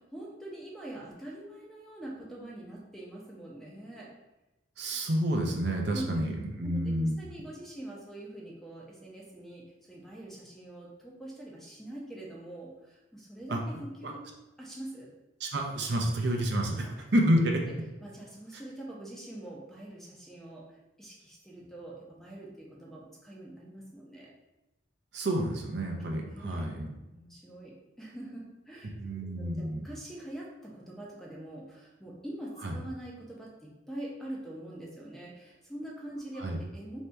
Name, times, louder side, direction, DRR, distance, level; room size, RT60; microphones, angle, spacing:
voice 1, 0.0-4.1 5.9-6.3 6.6-14.3 14.6-15.1 16.4-16.5 16.8-17.0 17.6-17.7 18.0-20.7 21.0-24.3 26.1-26.7 27.1-37.0, right 1 dB, ahead, -3 dB, 0.6 m, -44 dB
voice 2, 4.8-6.3 6.6-7.1 13.5-13.6 14.0-14.1 15.4-17.6 25.1-26.9 29.0-29.8 32.6-32.7 36.4-36.6, right 1 dB, 60° right, 1 dB, 0.6 m, -29 dB
3.3 x 2.7 x 4.5 m, 1.0 s
head